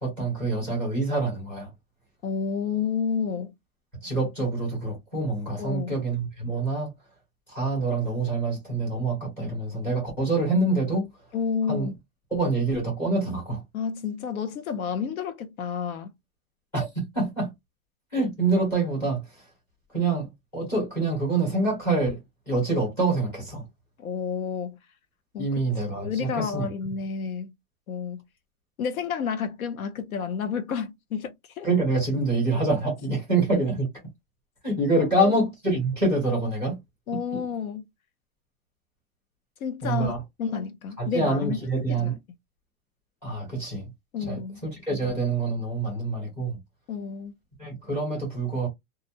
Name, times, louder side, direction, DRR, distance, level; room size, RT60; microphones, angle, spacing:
voice 1, 0.0-1.7 4.0-6.9 7.5-11.1 11.7-11.9 12.3-13.6 16.7-17.5 18.1-19.5 19.9-23.6 25.4-26.9 31.6-33.9 34.6-36.8 37.1-37.4 39.8-40.2 41.0-42.2 43.2-43.9 44.3-46.6 47.6-48.7, right 2 dB, 5° left, 0.9 m, -26 dB
voice 2, 2.2-3.5 5.6-5.9 11.3-11.9 13.7-16.1 24.0-24.8 25.3-25.5 26.0-27.5 27.9-28.2 28.8-31.7 35.0-35.3 37.1-37.8 39.6-41.6 42.0-42.1 44.1-44.6 46.9-47.3, left 6 dB, 70° left, 0.7 m, -30 dB
2.4 x 2.0 x 2.8 m
hypercardioid pair, 175°, 44 cm